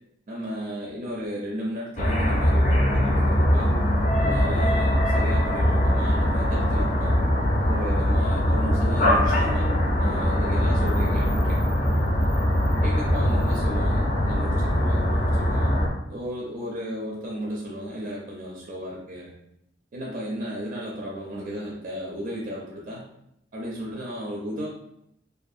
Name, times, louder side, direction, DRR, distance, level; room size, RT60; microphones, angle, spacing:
voice 1, 0.3-3.7 4.2-7.2 7.7-11.6 11.9-12.0 12.8-15.8 16.1-19.3 19.9-23.0 23.5-24.7, equal, 45° right, -3 dB, 0.4 m, -34 dB
sound 1, 2.0-15.9, equal, 45° left, 0.4 m, -22 dB
2.5 x 2.3 x 2.6 m, 0.78 s
head